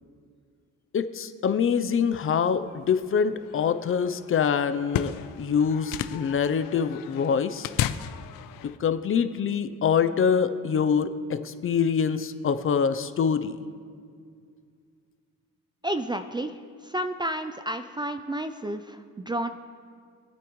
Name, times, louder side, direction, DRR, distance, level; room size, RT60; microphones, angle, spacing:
voice 1, 0.9-7.7 8.6-13.6, left 6 dB, 40° left, 11 dB, 0.6 m, -25 dB
sound 1, 2.4-8.8, left 11 dB, 90° left, 0.5 m, -35 dB
voice 2, 15.8-19.5, right 1 dB, 15° right, 9 dB, 0.4 m, -31 dB
23.5 x 8.7 x 3.1 m, 2.1 s
cardioid pair, 120°, 33 cm